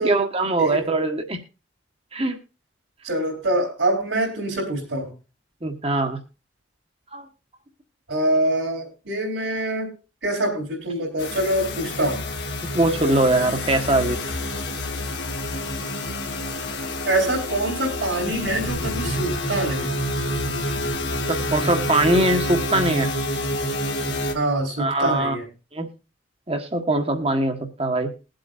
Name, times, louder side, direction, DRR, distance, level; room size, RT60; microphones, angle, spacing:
voice 1, 0.0-1.4 2.1-2.4 5.6-6.2 7.1-7.3 12.7-14.2 21.3-23.1 24.8-25.4 25.7-25.9 26.5-28.1, right 2 dB, 30° right, 5 dB, 1.3 m, -22 dB
voice 2, 3.0-5.1 8.1-9.9 10.2-12.2 17.1-19.9 24.3-25.4, right 1 dB, 75° right, -6 dB, 4.0 m, -24 dB
sound 1, 11.2-24.3, left 1 dB, 60° left, 1.8 m, -28 dB
21.5 x 7.8 x 2.5 m, 0.31 s
head